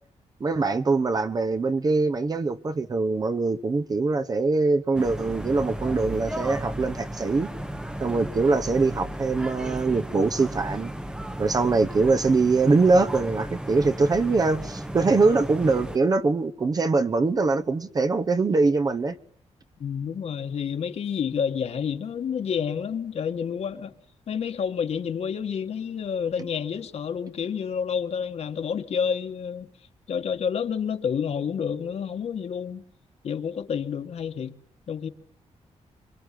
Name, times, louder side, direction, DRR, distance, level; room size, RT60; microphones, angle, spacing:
voice 1, 0.4-7.5 8.0-10.9 11.4-19.1, right 3 dB, 30° right, 1.2 m, -23 dB
sound 1, 4.9-16.0, right 1 dB, 5° right, 1.0 m, -35 dB
voice 2, 19.8-23.9 24.3-29.7 30.1-32.8 33.2-34.6 34.9-35.1, left 7 dB, 60° left, 1.8 m, -29 dB
25.0 x 24.5 x 7.7 m
wide cardioid pair, 140°, 12 cm